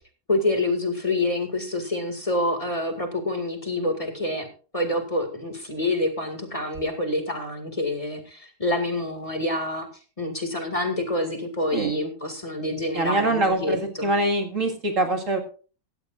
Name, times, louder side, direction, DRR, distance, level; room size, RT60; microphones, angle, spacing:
voice 1, 0.3-4.5 4.7-9.9 10.2-14.1, left 1 dB, 20° left, 4 dB, 2.2 m, -27 dB
voice 2, 12.9-15.4, right 2 dB, 55° right, 2 dB, 2.4 m, -24 dB
17.5 x 14.0 x 2.5 m, 0.38 s
omnidirectional pair, 1.6 m